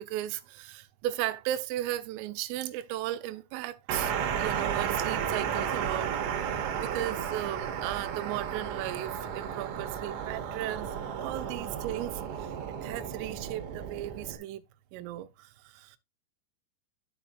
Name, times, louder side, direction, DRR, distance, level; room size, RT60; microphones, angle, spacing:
voice 1, 0.0-6.1 6.4-14.6 14.9-16.0, right 14 dB, 90° right, 3.2 m, -36 dB
sound 1, 3.9-14.4, right 8 dB, 75° right, 2.9 m, -33 dB
12.5 x 5.1 x 2.4 m
omnidirectional pair, 5.7 m